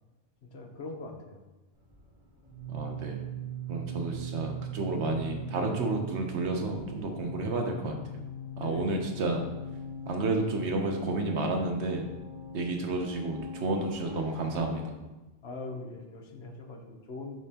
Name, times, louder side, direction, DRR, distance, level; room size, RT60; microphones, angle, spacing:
voice 1, 0.4-1.4 7.5-7.7 8.6-9.0 15.4-17.4, left 2 dB, 70° left, 3 dB, 1.2 m, -42 dB
sound 1, 1.7-14.6, right 2 dB, 20° right, 2.0 m, -40 dB
voice 2, 2.7-3.2 3.7-8.2 8.6-9.4 10.1-12.1 12.5-14.9, right 2 dB, 80° right, 3 dB, 1.2 m, -31 dB
8.0 x 5.3 x 2.9 m, 1.1 s
omnidirectional pair, 1.1 m